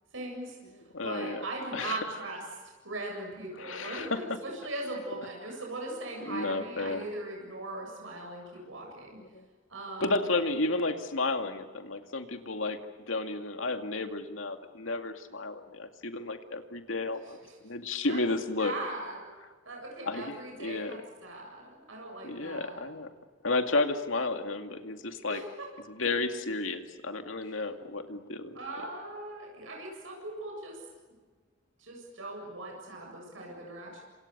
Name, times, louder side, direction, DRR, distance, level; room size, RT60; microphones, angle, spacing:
voice 1, 0.1-2.4 2.8-9.2 9.7-10.4 18.1-18.2 18.6-19.2 19.6-22.8 25.3-25.5 28.5-30.8 31.8-34.0, right 2 dB, 80° right, 0 dB, 7.8 m, -39 dB
voice 2, 0.9-1.4 1.7-2.0 3.6-4.2 6.3-7.1 9.2-9.5 10.0-12.8 13.1-18.7 20.0-21.0 22.2-23.1 23.4-25.4 25.9-28.6, left 3 dB, 85° left, 6 dB, 2.4 m, -32 dB
27.5 x 27.5 x 6.9 m, 1.4 s
head